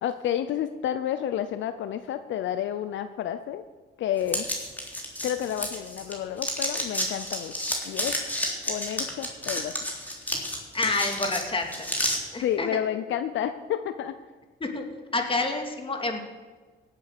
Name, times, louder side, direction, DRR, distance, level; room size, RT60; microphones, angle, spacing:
voice 1, 0.0-3.6 4.0-4.5 5.2-8.1 8.7-9.7 12.4-14.1, left 10 dB, 70° left, 10 dB, 0.7 m, -30 dB
sound 1, 4.3-6.1 6.4-12.2, equal, 10° left, 3.6 m, -30 dB
voice 2, 10.7-11.7 12.3-12.8 14.6-14.8 15.1-16.2, left 3 dB, 25° left, 4 dB, 2.5 m, -28 dB
17.0 x 8.2 x 6.7 m, 1.4 s
cardioid pair, 90°, 20 cm